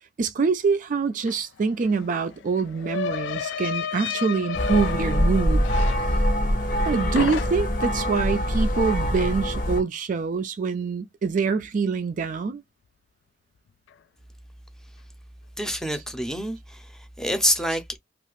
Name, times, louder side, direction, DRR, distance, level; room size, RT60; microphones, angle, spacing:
voice 1, 0.2-5.7 6.8-12.6, right 5 dB, 45° right, 0.4 m, -25 dB
sound 1, 1.3-1.4 1.6-6.9 7.2-7.9, left 7 dB, 80° left, 0.3 m, -32 dB
sound 2, 4.5-9.8, equal, 50° left, 0.8 m, -24 dB
voice 2, 15.6-18.0, equal, 5° left, 0.6 m, -27 dB
2.7 x 2.4 x 3.0 m
head